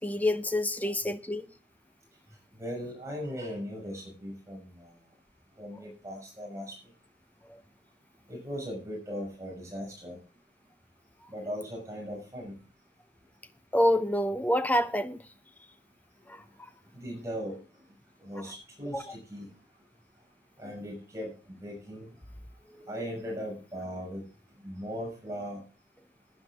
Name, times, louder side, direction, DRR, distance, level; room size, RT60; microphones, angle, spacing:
voice 1, 0.0-1.5 13.7-15.2 18.9-19.0, left 1 dB, 10° left, 0.8 m, -27 dB
voice 2, 2.6-4.9 5.6-6.7 8.3-10.2 11.3-12.5 16.9-17.6 18.2-19.5 20.6-21.3 21.6-22.1 22.7-24.2 24.6-25.6, equal, 15° right, 6.0 m, -38 dB
18.0 x 9.8 x 3.6 m
head